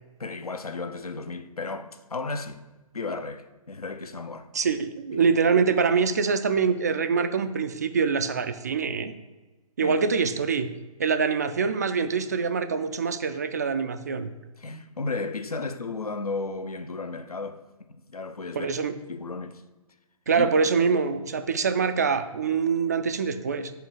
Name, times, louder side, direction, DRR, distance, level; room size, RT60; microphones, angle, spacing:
voice 1, 0.2-2.6 2.9-4.5 5.1-5.2 9.8-10.0 14.6-17.6 17.9-18.7 19.1-19.6 20.4-20.5, left 3 dB, 80° left, 0.7 m, -34 dB
voice 2, 4.5-9.1 9.8-10.7 11.0-14.3 18.5-19.0 20.3-23.7, right 5 dB, 30° right, 0.3 m, -24 dB
5.6 x 4.4 x 5.8 m
figure-of-eight pair, 135°, 19 cm